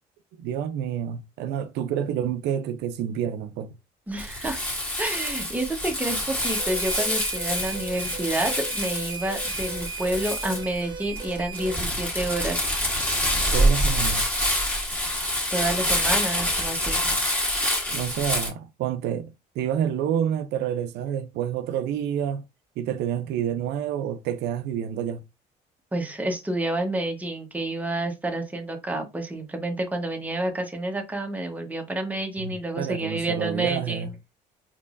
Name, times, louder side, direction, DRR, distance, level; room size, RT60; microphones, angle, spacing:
voice 1, 0.3-3.8 13.5-14.3 17.9-22.4 22.8-25.2 32.4-34.1, right 9 dB, 80° right, 0.4 m, -28 dB
voice 2, 4.1-4.6 5.0-12.6 15.5-17.1 25.9-34.1, right 1 dB, 10° right, 1.0 m, -29 dB
Crumpling crinkling, 4.2-18.5, equal, 10° left, 1.9 m, -26 dB
sound 1, 6.4-11.8, right 6 dB, 25° right, 0.6 m, -38 dB
4.5 x 3.0 x 2.5 m
cardioid pair, 110°, 17 cm